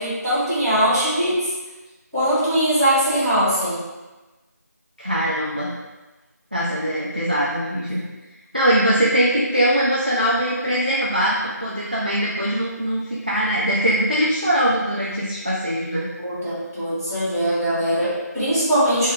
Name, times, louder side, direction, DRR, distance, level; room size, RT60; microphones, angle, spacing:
voice 1, 0.0-1.4 2.1-3.8 16.2-19.1, equal, ahead, -34 dB, 1.2 m, -21 dB
voice 2, 5.0-5.7 6.5-8.0 8.5-16.1, equal, 30° right, -6 dB, 0.4 m, -21 dB
3.2 x 3.1 x 3.8 m, 1.1 s
figure-of-eight pair, 180°, 10 cm